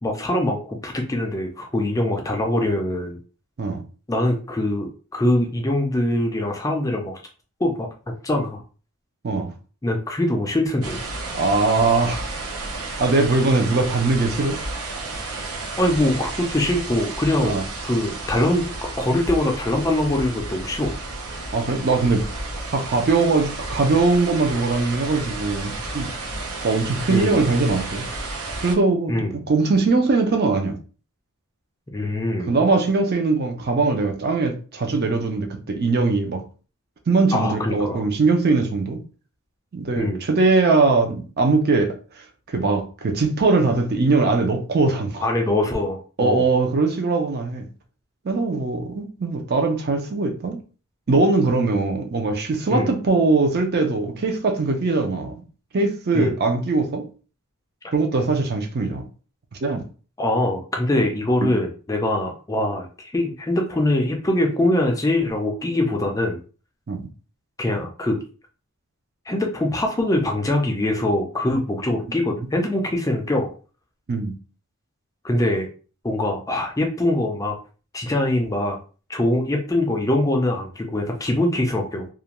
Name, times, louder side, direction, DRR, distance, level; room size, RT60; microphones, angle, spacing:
voice 1, 0.0-3.2 4.1-7.2 7.6-7.9 8.2-8.6 9.8-11.0 15.8-17.6 17.8-21.0 27.1-27.4 29.1-29.3 31.9-32.5 37.3-38.0 40.0-40.2 45.2-46.5 52.7-52.9 56.1-56.3 60.2-66.4 67.6-68.2 69.3-73.5 75.2-75.7 76.0-77.6 77.9-78.8 79.1-82.1, left 1 dB, 15° left, 0.3 m, -23 dB
sound 1, 10.8-28.8, right 2 dB, 90° right, 0.7 m, -32 dB
voice 2, 11.3-12.3 13.0-14.6 17.4-17.6 21.5-22.3 22.7-26.1 26.6-28.1 28.6-30.8 32.5-36.4 37.1-39.0 39.7-42.0 42.5-45.3 46.2-47.7 48.2-50.6 51.1-55.4 55.7-57.1 57.9-59.0 59.6-59.9 61.4-61.5 66.9-67.1 74.1-74.4, right 3 dB, 45° right, 0.5 m, -21 dB
2.4 x 2.1 x 2.9 m
head